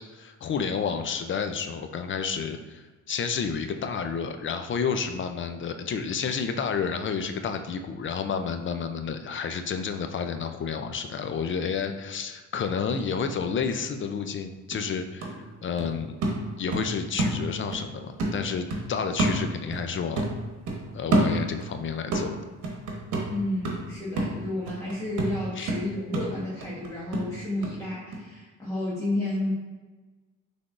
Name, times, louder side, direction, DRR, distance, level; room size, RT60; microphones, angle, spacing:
voice 1, 0.1-15.4 15.6-16.2 16.6-20.2 20.9-22.3 25.6-25.7, left 6 dB, 40° left, 7 dB, 0.5 m, -30 dB
sound 1, 14.3-14.4 14.7-17.9 18.2-19.9 20.2-21.8 22.1-27.8 28.1-28.2, right 2 dB, 80° right, 1.1 m, -29 dB
voice 2, 23.3-29.5, left 1 dB, 10° left, -8 dB, 1.4 m, -31 dB
5.9 x 3.4 x 2.5 m, 1.3 s
cardioid pair, 90°, 30 cm